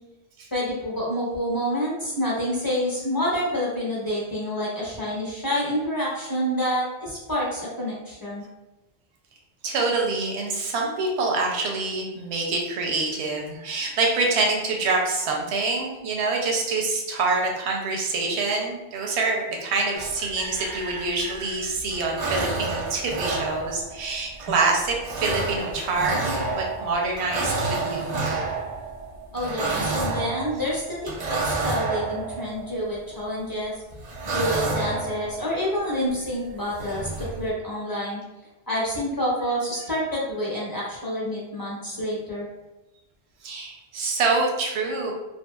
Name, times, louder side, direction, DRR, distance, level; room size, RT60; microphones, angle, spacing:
voice 1, 0.5-8.4 29.3-33.7 34.2-38.2 38.7-42.5, equal, 25° left, -6 dB, 0.6 m, -28 dB
voice 2, 9.6-28.4 43.4-45.1, right 3 dB, 85° right, 0 dB, 0.9 m, -26 dB
sound 1, 19.9-21.4 21.7-33.5 33.9-36.1 36.5-36.6 36.7-37.5, right 3 dB, 50° right, 0.5 m, -30 dB
2.7 x 2.5 x 2.2 m, 1.0 s
omnidirectional pair, 1.1 m